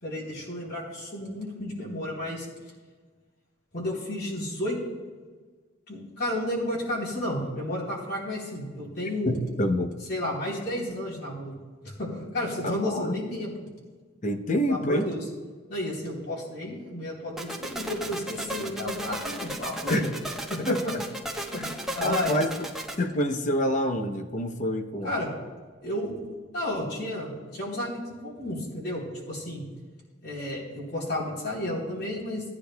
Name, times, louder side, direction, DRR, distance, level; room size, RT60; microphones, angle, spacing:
voice 1, 0.0-2.5 3.7-4.8 5.9-9.4 10.1-11.5 11.8-13.5 14.7-15.2 15.7-20.1 20.5-20.7 21.5-21.6 21.9-22.4 25.0-25.3 25.8-29.6 30.2-32.4, left 1 dB, 55° left, -3 dB, 3.6 m, -32 dB
voice 2, 9.3-9.9 12.6-13.2 14.2-15.1 19.9-20.0 20.6-20.8 22.0-22.7 23.0-25.1, left 1 dB, 40° left, 6 dB, 0.7 m, -27 dB
sound 1, 17.4-22.9, right 1 dB, ahead, 1.0 m, -34 dB
17.0 x 9.8 x 2.3 m, 1.5 s
head